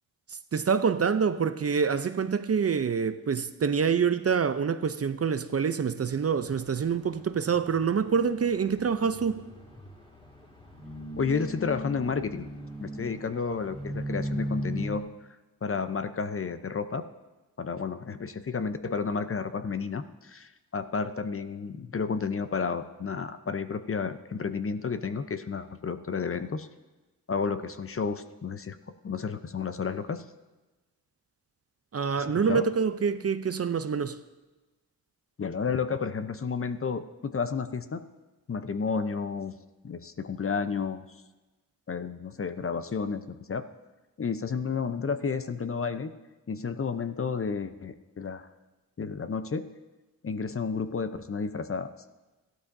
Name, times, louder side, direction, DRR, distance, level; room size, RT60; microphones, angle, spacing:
voice 1, 0.3-9.4 31.9-34.2, right 6 dB, 40° right, 0.6 m, -26 dB
sound 1, 6.4-15.0, equal, 15° left, 2.2 m, -38 dB
voice 2, 11.2-12.5 12.8-15.0 15.6-17.0 17.6-26.7 27.3-28.8 29.0-30.3 32.1-32.7 35.4-38.0 38.5-39.6 39.8-41.0 41.9-43.6 44.2-46.1 46.5-48.5 49.0-49.7 50.2-51.9, left 5 dB, 35° left, 0.7 m, -31 dB
14.5 x 12.0 x 2.7 m
cardioid pair, 50°, 38 cm